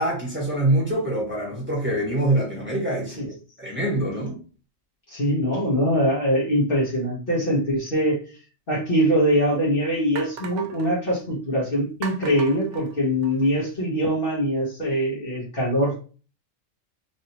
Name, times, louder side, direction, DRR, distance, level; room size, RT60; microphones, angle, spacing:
voice 1, 0.0-3.3 3.6-4.4, right 1 dB, 10° right, -4 dB, 1.4 m, -24 dB
voice 2, 5.1-8.2 8.7-16.1, equal, 45° left, -4 dB, 1.3 m, -23 dB
sound 1, 8.8-8.9 9.5-9.6 10.1-10.9 12.0-13.5, right 6 dB, 75° right, 0.9 m, -38 dB
3.2 x 2.6 x 2.8 m, 0.36 s
omnidirectional pair, 1.3 m